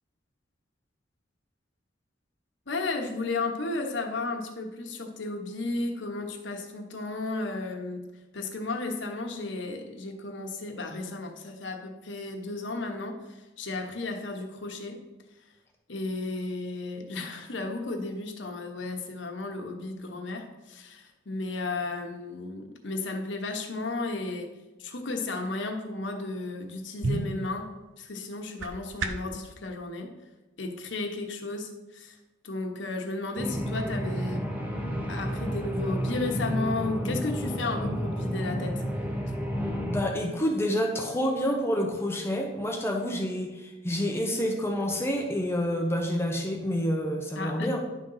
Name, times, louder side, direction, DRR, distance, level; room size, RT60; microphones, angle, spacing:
voice 1, 2.7-8.1 8.3-15.0 15.9-24.5 24.8-27.7 28.0-30.1 30.6-32.2 32.4-34.5 35.1-39.0 47.3-47.7, left 3 dB, 70° left, 3 dB, 1.1 m, -34 dB
sound 1, 26.5-29.4, right 2 dB, 80° right, 0.7 m, -34 dB
sound 2, 33.4-40.0, equal, 10° right, 1.0 m, -31 dB
voice 2, 39.8-47.8, equal, 15° left, 1 dB, 0.8 m, -28 dB
10.5 x 3.9 x 5.6 m, 1.1 s
head